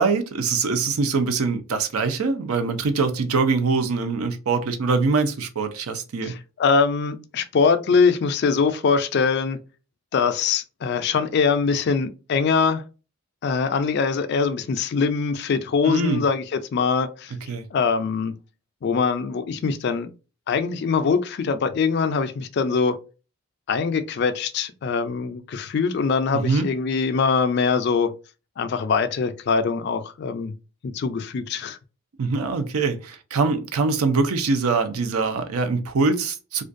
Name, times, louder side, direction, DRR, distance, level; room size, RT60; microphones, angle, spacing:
voice 1, 0.0-6.4 15.8-16.2 17.5-17.6 26.3-26.7 32.2-36.6, right 4 dB, 80° right, 0.5 m, -23 dB
voice 2, 6.2-9.6 10.1-12.8 13.4-17.3 17.7-18.3 18.8-20.1 20.5-23.0 23.7-28.1 28.6-30.5 30.8-31.8, left 5 dB, 50° left, 0.3 m, -23 dB
2.4 x 2.2 x 2.5 m
head